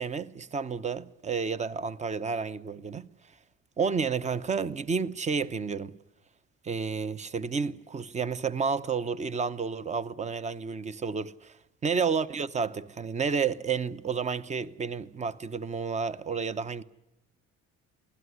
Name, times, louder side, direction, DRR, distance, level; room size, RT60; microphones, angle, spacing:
voice 1, 0.0-3.1 3.8-5.9 6.6-11.5 11.8-16.8, right 5 dB, 25° right, 0.9 m, -31 dB
24.0 x 17.0 x 9.6 m
cardioid pair, 160°, 30 cm